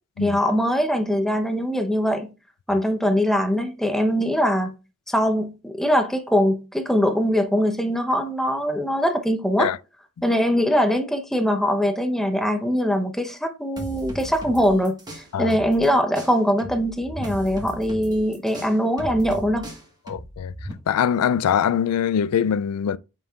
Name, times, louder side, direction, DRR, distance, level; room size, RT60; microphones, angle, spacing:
voice 1, 0.2-2.3 2.7-4.7 5.1-9.7 10.2-19.7, equal, ahead, 0.8 m, -22 dB
sound 1, 13.8-15.9 16.1-20.7, equal, 20° right, 1.4 m, -36 dB
voice 2, 20.1-20.5 20.9-23.0, left 8 dB, 90° left, 0.3 m, -22 dB
7.9 x 5.4 x 2.4 m
head